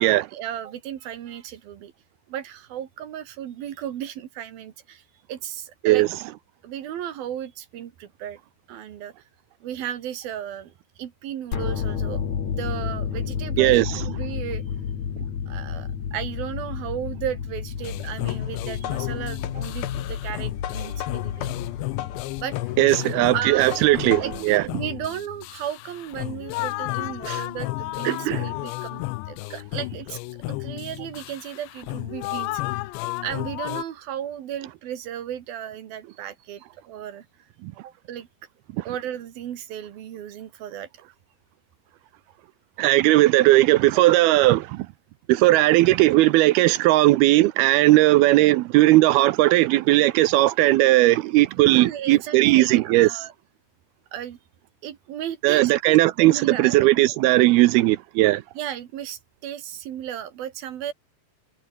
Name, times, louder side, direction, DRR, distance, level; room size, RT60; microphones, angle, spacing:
voice 1, 0.0-1.9 2.3-6.1 6.6-8.4 8.7-9.1 9.6-14.6 15.5-21.5 22.4-22.6 23.3-23.8 24.2-30.2 30.5-32.8 33.2-37.2 37.8-38.3 38.8-40.9 51.7-53.3 54.1-54.4 54.8-56.8 58.5-60.9, right 10 dB, 65° right, 3.3 m, -35 dB
sound 1, 11.5-22.5, left 7 dB, 45° left, 3.4 m, -31 dB
voice 2, 13.6-14.1 22.8-24.6 27.3-27.4 28.0-28.5 37.6-37.7 38.8-38.9 42.8-44.9 45.3-53.2 55.4-58.4, right 17 dB, 85° right, 2.3 m, -18 dB
sound 2, 17.7-24.6, left 13 dB, 65° left, 3.0 m, -36 dB
sound 3, 17.8-33.8, left 21 dB, 85° left, 2.9 m, -33 dB
omnidirectional pair, 5.0 m